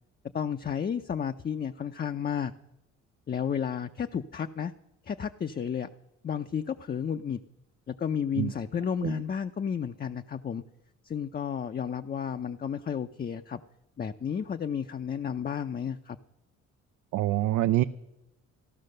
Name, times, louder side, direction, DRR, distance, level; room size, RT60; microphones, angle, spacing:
voice 1, 0.3-2.5 3.3-4.7 5.0-5.9 6.2-7.4 7.9-10.6 11.0-13.6 14.0-16.2, left 7 dB, 30° left, 8 dB, 0.5 m, -32 dB
voice 2, 17.1-17.8, right 14 dB, 80° right, 10 dB, 0.5 m, -25 dB
14.5 x 12.0 x 6.6 m, 0.89 s
cardioid pair, 90°, 30 cm